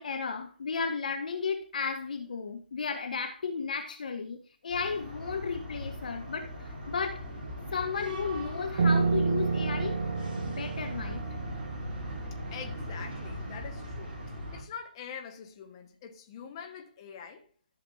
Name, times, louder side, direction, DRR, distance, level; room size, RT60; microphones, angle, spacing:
voice 1, 0.0-4.4 4.6-7.2 7.7-10.0 10.6-11.2, left 5 dB, 50° left, 1.3 m, -34 dB
sound 1, 4.7-14.6, left 1 dB, 25° right, 3.4 m, -39 dB
Piano, 8.8-14.1, right 4 dB, 50° right, 0.8 m, -31 dB
voice 2, 12.5-14.2 14.5-17.4, left 7 dB, 30° left, 1.4 m, -44 dB
14.0 x 6.6 x 2.7 m
figure-of-eight pair, 145°, 5 cm